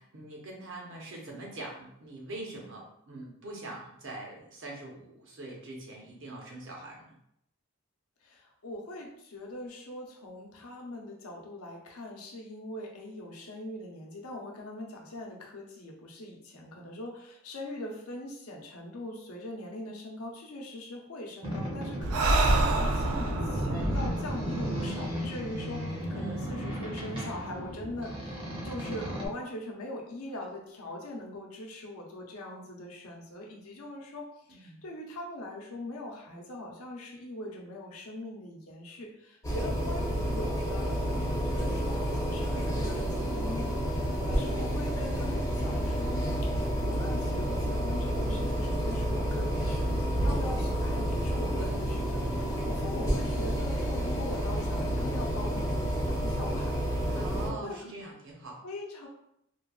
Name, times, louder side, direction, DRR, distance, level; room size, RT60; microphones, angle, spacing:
voice 1, 0.0-7.1 26.0-26.7 34.5-34.8 50.5-50.7 57.2-58.6, right 2 dB, 55° right, -1 dB, 0.7 m, -43 dB
voice 2, 8.2-57.9 58.6-59.1, left 1 dB, 80° left, -1 dB, 0.7 m, -42 dB
Boat Water vehicle, 21.4-29.3, equal, 25° right, 0.7 m, -34 dB
Breathing, 22.0-25.6, right 2 dB, 85° right, 0.4 m, -28 dB
sound 1, 39.4-57.5, equal, 15° left, 0.5 m, -30 dB
3.1 x 2.2 x 2.3 m, 0.75 s
head